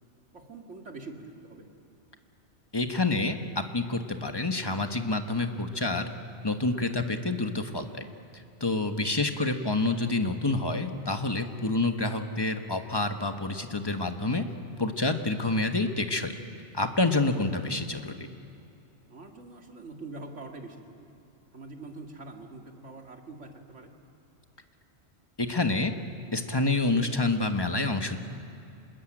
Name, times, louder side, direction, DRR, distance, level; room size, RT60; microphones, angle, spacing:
voice 1, 0.3-1.7 11.6-11.9 19.1-21.1 21.5-23.9, right 3 dB, 85° right, 2 dB, 2.6 m, -44 dB
voice 2, 2.7-6.1 6.4-8.1 8.3-14.4 14.8-16.3 16.7-18.3 25.4-25.9 26.3-28.2, left 2 dB, 20° left, 6 dB, 1.4 m, -28 dB
26.5 x 21.0 x 8.9 m, 2.8 s
omnidirectional pair, 1.2 m